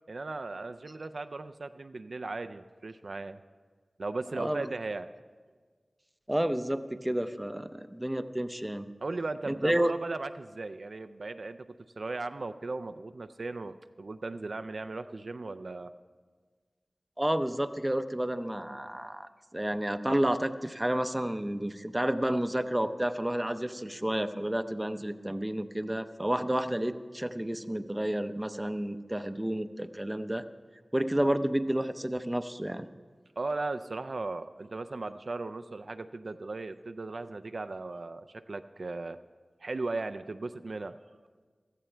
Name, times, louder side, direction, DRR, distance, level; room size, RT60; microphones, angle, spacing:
voice 1, 0.1-3.4 4.0-5.1 9.0-11.6 12.0-15.9 33.4-39.2 39.6-41.0, right 3 dB, 70° right, 9 dB, 0.4 m, -37 dB
voice 2, 6.3-8.9 9.5-9.9 17.2-30.4 30.9-32.9, right 1 dB, 15° right, 10 dB, 0.5 m, -30 dB
16.0 x 14.0 x 3.3 m, 1.5 s
wide cardioid pair, 60°, 0 cm